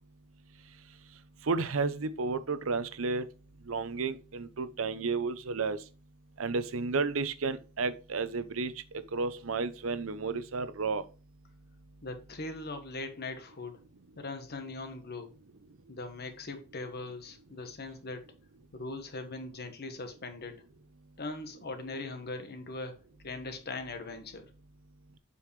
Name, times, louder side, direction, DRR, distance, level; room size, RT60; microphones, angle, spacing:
voice 1, 1.5-3.2 3.7-5.8 6.4-8.7 9.1-11.0, right 4 dB, 75° right, 0.7 m, -32 dB
voice 2, 12.0-13.8 14.2-15.3 15.9-18.3 18.7-20.6 21.2-24.4, left 3 dB, 50° left, 1.3 m, -40 dB
7.5 x 5.5 x 3.2 m
head